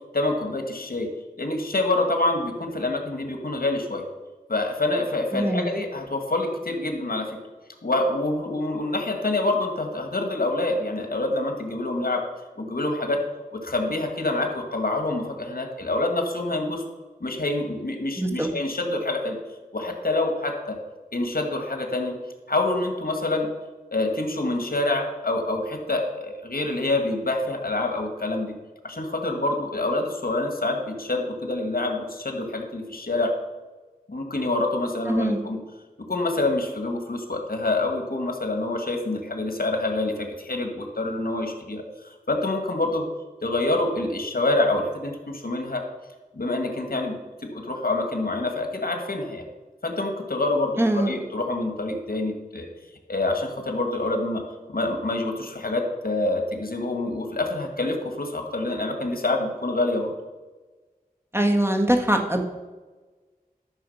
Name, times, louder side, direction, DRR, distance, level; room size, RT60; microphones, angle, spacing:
voice 1, 0.1-1.1 1.4-4.0 4.5-7.4 7.8-12.2 12.6-13.2 13.5-16.8 17.2-19.4 19.7-20.8 21.1-22.1 22.5-23.5 23.9-28.6 28.8-33.3 34.1-35.6 36.1-43.0 43.4-45.8 46.3-47.2 47.5-49.4 49.8-52.7 53.1-54.4 54.7-60.1, left 2 dB, 80° left, 4 dB, 1.7 m, -26 dB
voice 2, 5.3-5.7 18.2-18.5 35.1-35.4 50.8-51.1 61.3-62.4, right 1 dB, 15° right, 3 dB, 1.6 m, -22 dB
12.5 x 6.5 x 5.5 m, 1.2 s
wide cardioid pair, 50°, 15 cm